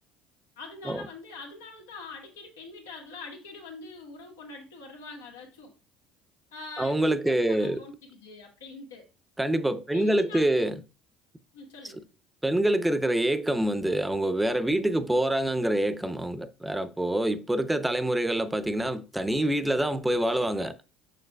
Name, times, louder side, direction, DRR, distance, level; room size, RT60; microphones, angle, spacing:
voice 1, 0.6-5.7 6.5-7.0 7.2-9.1 9.9-10.7 11.5-12.1, left 3 dB, 85° left, 1.6 m, -44 dB
voice 2, 6.8-7.8 9.4-10.8 12.4-20.7, right 1 dB, 10° right, 0.7 m, -26 dB
6.5 x 6.5 x 2.3 m
hypercardioid pair, 65°, 0 cm